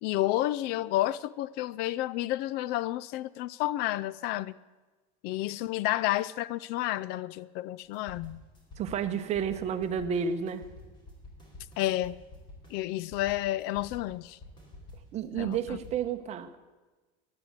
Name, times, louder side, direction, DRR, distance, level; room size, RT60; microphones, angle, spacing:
voice 1, 0.0-4.5 5.2-8.4 11.8-12.2 12.7-14.4 15.3-15.6, left 15 dB, 55° left, 0.4 m, -30 dB
sound 1, 7.8-15.9, left 2 dB, 25° left, 4.1 m, -49 dB
voice 2, 8.8-10.6 15.1-16.6, right 7 dB, 35° right, 1.1 m, -31 dB
14.0 x 10.5 x 8.2 m
cardioid pair, 150°, 20 cm